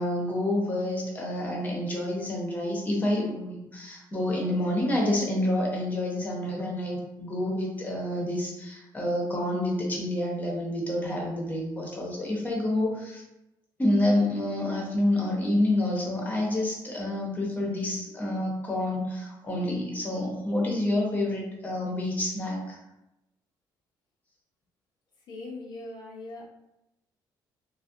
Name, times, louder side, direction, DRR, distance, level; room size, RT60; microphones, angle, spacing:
voice 1, 0.0-13.2 13.8-22.8, left 1 dB, 20° left, -2 dB, 0.7 m, -28 dB
voice 2, 25.3-26.4, left 2 dB, 60° left, -3 dB, 0.4 m, -40 dB
2.4 x 2.0 x 2.5 m, 0.90 s
cardioid pair, 120°, 8 cm